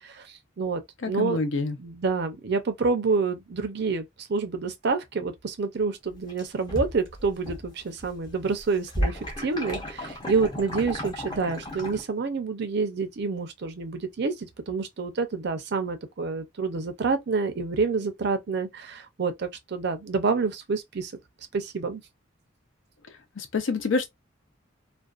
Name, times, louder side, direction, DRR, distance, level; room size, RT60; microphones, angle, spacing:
voice 1, 0.0-1.4 1.8-21.1 21.5-22.0, right 4 dB, 55° right, 0.5 m, -28 dB
voice 2, 1.0-1.8 23.4-24.1, left 3 dB, 65° left, 0.6 m, -27 dB
sound 1, 6.1-7.7 8.0-12.0, equal, 20° left, 0.7 m, -33 dB
2.5 x 2.2 x 2.3 m
head